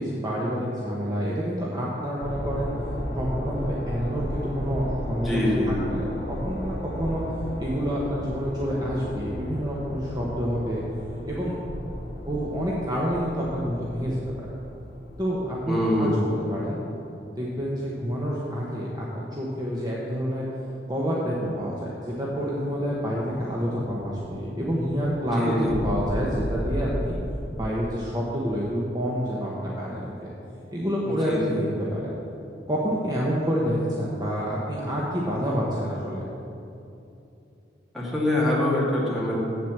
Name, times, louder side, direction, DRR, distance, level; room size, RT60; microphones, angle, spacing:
voice 1, 0.0-2.7 3.2-7.2 7.6-10.8 11.3-11.6 12.3-14.5 15.2-16.1 16.4-16.8 17.3-20.5 20.9-27.1 27.5-30.3 30.7-32.2 32.7-36.3, equal, 20° right, -5 dB, 1.1 m, -28 dB
sound 1, 2.2-15.8, equal, 85° left, 2.0 m, -34 dB
voice 2, 5.2-5.7 15.7-16.2 25.3-25.8 31.0-31.6 37.9-39.4, left 1 dB, ahead, -6 dB, 2.3 m, -24 dB
Explosion, 22.5-28.0, equal, 20° left, 0.8 m, -34 dB
8.2 x 7.7 x 7.2 m, 2.7 s
head